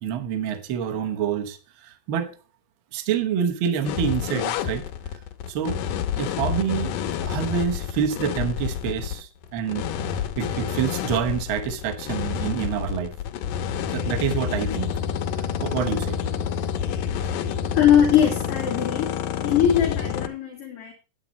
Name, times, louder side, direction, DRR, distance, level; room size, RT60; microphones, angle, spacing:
voice 1, 0.0-2.3 2.9-4.9 5.5-5.8 6.1-6.9 7.2-13.1 13.9-14.9 15.3-16.2, right 8 dB, 60° right, 1.4 m, -27 dB
sound 1, 3.9-20.3, left 8 dB, 85° left, 2.4 m, -28 dB
voice 2, 17.7-19.2 19.4-20.9, left 9 dB, 55° left, 2.0 m, -21 dB
8.9 x 8.7 x 4.1 m
omnidirectional pair, 3.7 m